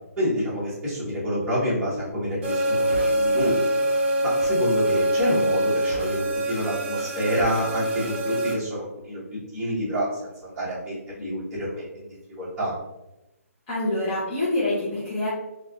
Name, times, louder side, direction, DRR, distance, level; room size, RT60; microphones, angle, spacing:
voice 1, 0.2-3.7 4.2-9.2 9.5-12.8, equal, 10° right, -11 dB, 1.2 m, -28 dB
sound 1, 2.4-8.5, right 1 dB, 45° right, 0.6 m, -24 dB
voice 2, 13.7-15.3, left 2 dB, 25° left, -10 dB, 0.7 m, -26 dB
3.3 x 2.3 x 2.3 m, 0.97 s
hypercardioid pair, 155°, 8 cm